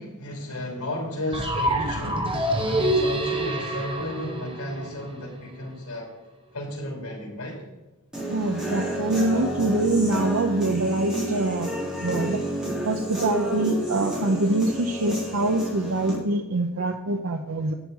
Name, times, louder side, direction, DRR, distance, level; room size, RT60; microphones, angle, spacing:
voice 1, 0.0-6.1 6.5-7.6, left 1 dB, 90° left, -5 dB, 3.2 m, -33 dB
sound 1, 1.3-5.3, right 1 dB, 25° right, 1.5 m, -26 dB
Human voice / Guitar, 8.1-16.1, right 1 dB, 5° right, 4.1 m, -30 dB
voice 2, 8.3-11.7 12.0-12.4 12.8-17.7, right 2 dB, 70° right, 5 dB, 0.7 m, -24 dB
11.0 x 9.0 x 5.5 m, 1.1 s
head